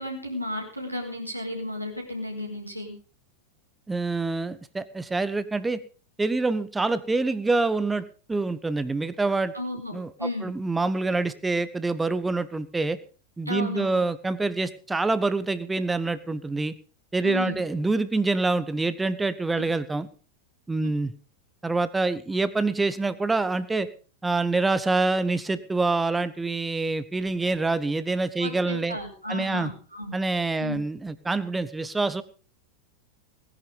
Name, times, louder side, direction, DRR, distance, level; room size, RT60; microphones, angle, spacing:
voice 1, 0.0-2.9 9.5-10.5 13.5-14.0 17.2-17.6 20.8-20.9 28.4-30.2 30.6-30.8, left 1 dB, 90° right, -1 dB, 4.8 m, -33 dB
voice 2, 3.9-5.8 6.2-9.5 9.9-13.0 13.4-16.7 17.1-20.1 20.7-21.1 21.6-23.9 24.2-29.0 29.3-29.7 30.1-32.2, right 3 dB, 10° right, 15 dB, 1.1 m, -26 dB
18.5 x 10.5 x 5.3 m, 0.38 s
figure-of-eight pair, 90°, 0 cm